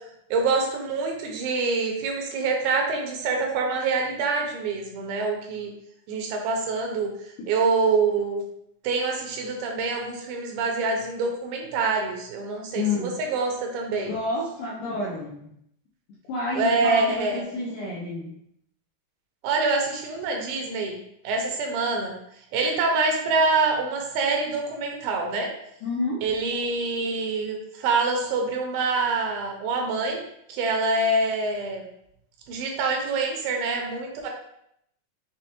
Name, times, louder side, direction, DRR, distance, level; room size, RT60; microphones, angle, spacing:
voice 1, 0.3-5.7 6.1-7.1 7.5-8.4 8.8-14.1 16.6-17.4 19.4-22.1 22.5-25.5 26.2-30.2 30.5-31.8 32.5-34.3, right 3 dB, 85° right, 1 dB, 2.5 m, -25 dB
voice 2, 12.8-13.2 14.1-15.5 16.3-18.4 25.8-26.3, left 2 dB, 85° left, -5 dB, 1.8 m, -29 dB
6.2 x 2.1 x 2.8 m, 0.74 s
omnidirectional pair, 4.3 m